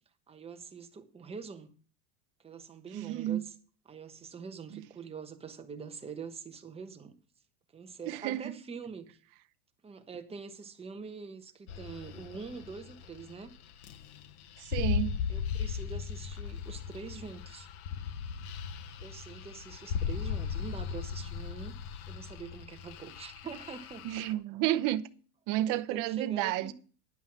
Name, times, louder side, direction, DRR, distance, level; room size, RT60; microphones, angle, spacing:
voice 1, 0.3-1.7 2.4-3.6 3.9-7.1 7.7-9.2 9.8-13.5 15.3-17.7 19.0-21.7 22.1-24.1 25.7-26.7, right 5 dB, 15° right, 1.1 m, -45 dB
voice 2, 2.9-3.4 8.1-8.5 14.6-15.2 24.0-25.0 25.5-26.7, right 14 dB, 45° right, 0.8 m, -31 dB
sound 1, 11.7-24.3, left 7 dB, 90° left, 1.2 m, -37 dB
10.5 x 5.5 x 7.3 m
supercardioid pair, 145°, 42 cm